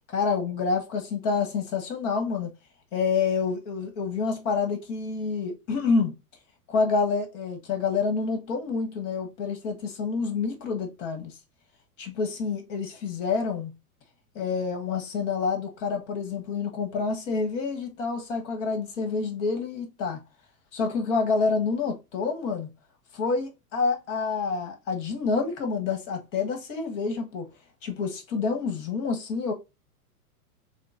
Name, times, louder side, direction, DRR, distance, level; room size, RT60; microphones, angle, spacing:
voice 1, 0.1-2.5 2.9-6.1 6.7-11.4 12.0-13.7 14.3-20.2 20.7-22.7 23.1-27.5 27.8-29.5, left 4 dB, 55° left, 1.4 m, -28 dB
6.6 x 2.2 x 2.5 m
hypercardioid pair, 115°, 44 cm